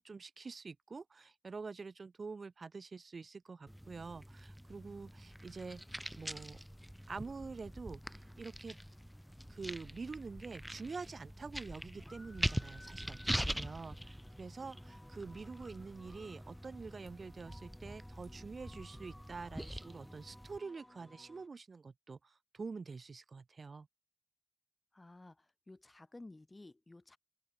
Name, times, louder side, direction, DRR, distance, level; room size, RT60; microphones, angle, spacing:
voice 1, 0.0-6.6 7.1-8.8 9.5-23.9, right 4 dB, 65° right, 1.5 m, -47 dB
sound 1, 3.7-20.6, equal, 5° right, 0.7 m, -44 dB
sound 2, 4.6-15.7, left 4 dB, 65° left, 5.7 m, -71 dB
sound 3, 12.1-21.5, left 1 dB, 15° left, 3.3 m, -60 dB
voice 2, 24.9-27.2, left 2 dB, 35° left, 3.2 m, -54 dB
open air
cardioid pair, 45°, 0 cm